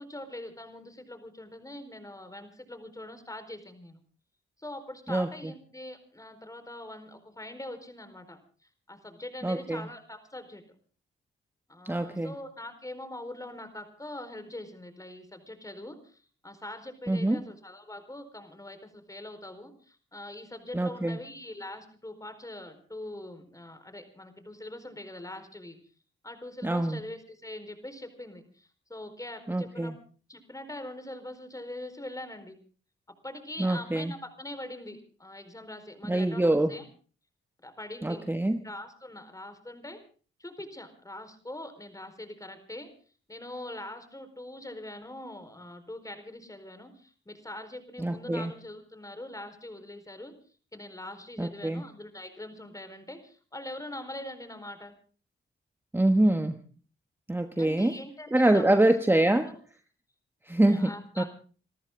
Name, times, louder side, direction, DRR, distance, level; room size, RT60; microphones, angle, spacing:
voice 1, 0.0-4.0 4.6-8.4 8.9-10.6 11.7-25.8 26.2-29.9 30.3-32.6 33.2-36.8 37.6-38.2 38.5-40.0 40.4-42.9 43.3-50.3 50.7-54.9 57.6-58.9 59.4-59.6 60.6-61.3, left 1 dB, 15° left, 9 dB, 4.4 m, -43 dB
voice 2, 5.1-5.5 9.4-9.9 11.8-12.3 17.1-17.4 20.7-21.2 26.6-27.0 29.5-29.9 33.6-34.1 36.1-36.7 38.0-38.6 48.0-48.5 51.4-51.8 55.9-56.6 57.3-58.0 58.3-59.5 60.5-61.2, right 1 dB, 10° right, 8 dB, 1.2 m, -25 dB
28.0 x 14.0 x 3.7 m, 0.39 s
cardioid pair, 75°, 21 cm